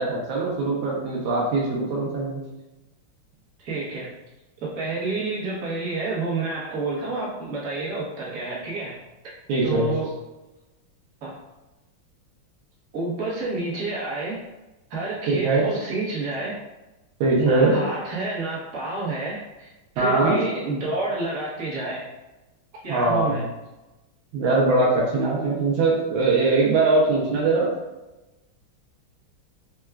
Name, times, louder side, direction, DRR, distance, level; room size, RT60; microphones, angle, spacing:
voice 1, 0.0-2.4 9.5-9.9 15.3-15.7 17.2-17.8 20.0-20.4 22.9-23.4 24.3-27.7, right 3 dB, 75° right, -3 dB, 1.4 m, -21 dB
voice 2, 3.6-4.1 4.6-9.0 9.6-10.2 11.2-11.3 12.9-14.4 14.9-16.6 17.4-19.7 19.9-22.0 22.8-23.5, right 3 dB, 50° right, -6 dB, 1.0 m, -29 dB
4.6 x 2.2 x 2.2 m, 1.0 s
omnidirectional pair, 2.3 m